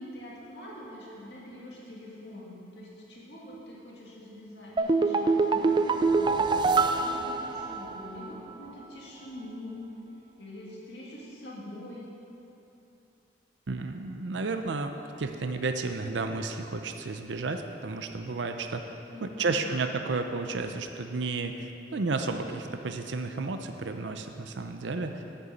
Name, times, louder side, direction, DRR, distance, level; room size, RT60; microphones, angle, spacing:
voice 1, 0.0-9.8 10.4-12.1 19.0-19.7, left 1 dB, 70° left, -5 dB, 2.5 m, -44 dB
sound 1, 4.8-8.2 8.5-8.6, right 4 dB, 25° right, 0.4 m, -25 dB
voice 2, 13.7-18.9 19.2-21.5 21.9-25.2, right 3 dB, 85° right, 6 dB, 0.6 m, -32 dB
9.0 x 7.0 x 7.6 m, 2.8 s
head